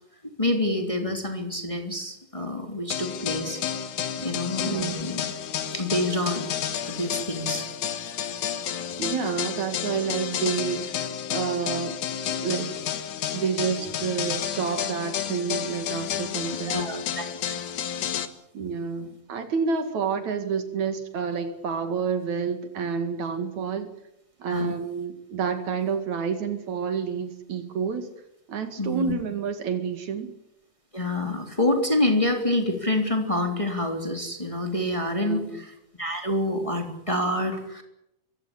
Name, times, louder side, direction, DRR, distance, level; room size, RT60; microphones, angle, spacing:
voice 1, 0.4-3.6 4.2-5.3 5.7-6.5 6.9-7.6 16.7-17.2 24.5-24.7 28.8-29.1 30.9-37.8, left 1 dB, 10° left, 4 dB, 3.2 m, -27 dB
sound 1, 2.9-18.3, left 9 dB, 75° left, 2.9 m, -31 dB
voice 2, 4.6-5.0 9.0-12.0 12.3-12.8 13.3-16.8 18.5-23.9 24.4-28.1 28.5-30.3 35.2-35.6, right 6 dB, 70° right, 9 dB, 3.4 m, -29 dB
23.5 x 17.0 x 9.9 m, 0.82 s
omnidirectional pair, 3.5 m